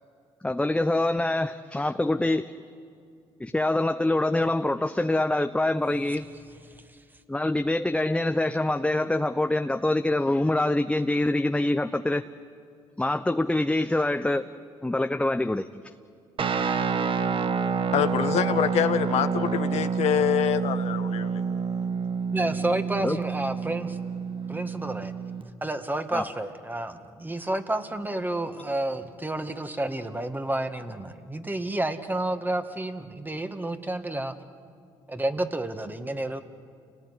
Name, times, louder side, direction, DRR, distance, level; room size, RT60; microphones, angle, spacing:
voice 1, 0.4-2.4 3.4-6.3 7.3-12.2 13.0-14.5 14.8-15.7 23.0-23.2 26.1-26.2, left 2 dB, 10° left, 8 dB, 0.8 m, -25 dB
voice 2, 6.7-7.0 22.3-24.0 24.5-25.1 25.6-34.4 35.1-36.4, right 1 dB, 15° right, 7 dB, 2.0 m, -30 dB
Guitar, 16.4-25.5, right 5 dB, 45° right, 1.4 m, -28 dB
voice 3, 17.9-21.4, left 10 dB, 65° left, 9 dB, 1.2 m, -25 dB
29.5 x 18.5 x 9.9 m, 2.4 s
hypercardioid pair, 60°, 12 cm